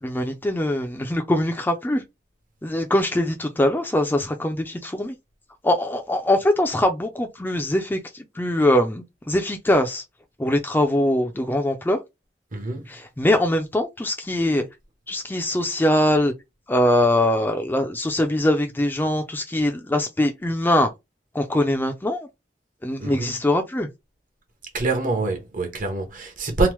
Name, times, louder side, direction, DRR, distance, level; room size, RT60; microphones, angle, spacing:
voice 1, 0.0-2.0 2.6-5.2 5.6-10.0 10.4-12.0 12.9-14.7 15.1-16.3 16.7-20.9 21.3-22.3 22.8-23.9, left 1 dB, 10° left, 0.4 m, -22 dB
voice 2, 12.5-12.9 23.0-23.3 24.7-26.7, right 3 dB, 50° right, 0.8 m, -25 dB
2.9 x 2.0 x 3.1 m
head